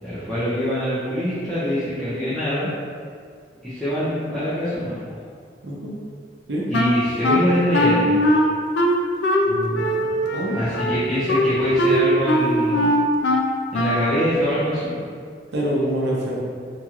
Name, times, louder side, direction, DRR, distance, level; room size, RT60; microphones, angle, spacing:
voice 1, 0.0-2.7 3.6-5.2 6.7-8.2 10.5-12.9 13.7-15.1, equal, ahead, -14 dB, 0.5 m, -24 dB
Wind instrument woodwind instrument, 6.7-14.3, equal, 70° left, 0.3 m, -20 dB
voice 2, 9.5-10.6 15.5-16.4, right 1 dB, 80° right, -5 dB, 0.7 m, -26 dB
3.0 x 2.8 x 2.3 m, 2.1 s
head